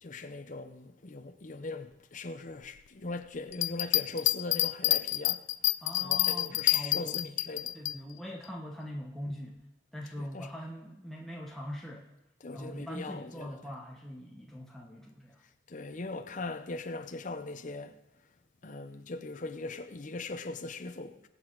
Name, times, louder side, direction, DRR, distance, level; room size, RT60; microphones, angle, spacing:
voice 1, 0.0-5.5 6.0-7.8 10.2-10.5 12.4-13.6 15.7-18.0 18.6-21.3, left 3 dB, 40° left, 0.7 m, -40 dB
sound 1, 3.5-7.9, left 16 dB, 75° left, 0.4 m, -28 dB
voice 2, 5.8-7.2 7.7-9.6 9.9-12.1 12.5-15.4, equal, ahead, 1.1 m, -42 dB
22.5 x 7.8 x 3.9 m
head